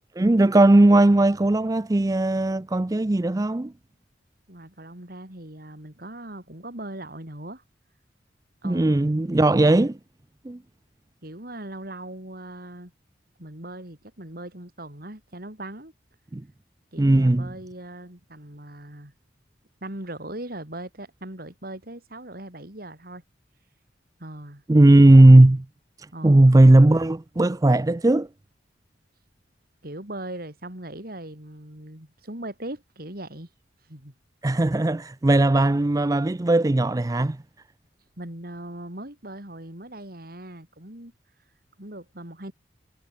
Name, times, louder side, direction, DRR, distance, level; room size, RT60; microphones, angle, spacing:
voice 1, 0.2-3.7 8.6-10.0 10.4-10.6 16.3-16.4 17.0-17.5 24.7-25.6 26.2-28.3 34.4-37.4, right 1 dB, 20° right, 0.4 m, -17 dB
voice 2, 4.5-7.6 8.6-9.0 11.2-12.9 13.4-15.9 16.9-19.1 19.8-23.2 24.2-24.6 26.1-26.7 29.8-33.5 33.9-34.1 38.2-41.1 41.8-42.5, right 1 dB, 55° right, 4.8 m, -39 dB
head